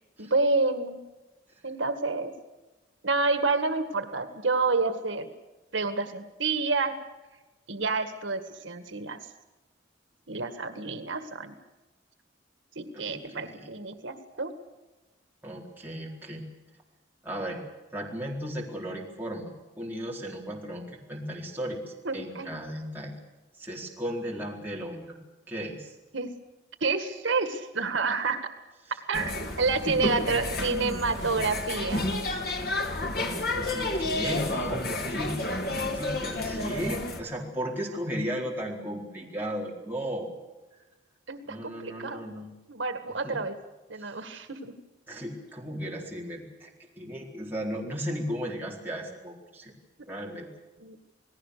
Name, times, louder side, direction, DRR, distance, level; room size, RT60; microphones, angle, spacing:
voice 1, 0.2-1.0 1.6-2.3 3.0-5.3 5.7-6.9 7.7-9.2 10.3-11.5 12.8-14.5 22.1-22.5 26.1-26.3 26.8-28.5 29.1-32.1 41.3-42.2 42.7-43.6 43.9-44.8 50.8-51.0, right 3 dB, 80° right, 9 dB, 1.9 m, -29 dB
voice 2, 12.9-13.7 15.4-16.5 17.2-17.6 17.9-19.5 19.8-21.8 22.1-23.2 23.6-25.2 25.5-25.9 33.1-35.4 35.8-40.3 41.5-42.5 43.2-43.4 44.0-44.1 45.1-46.7 47.0-49.7 50.1-50.5, equal, 10° right, -3 dB, 4.2 m, -35 dB
sound 1, 29.1-37.2, left 2 dB, 55° left, 2.7 m, -31 dB
28.0 x 18.5 x 6.7 m, 1.1 s
head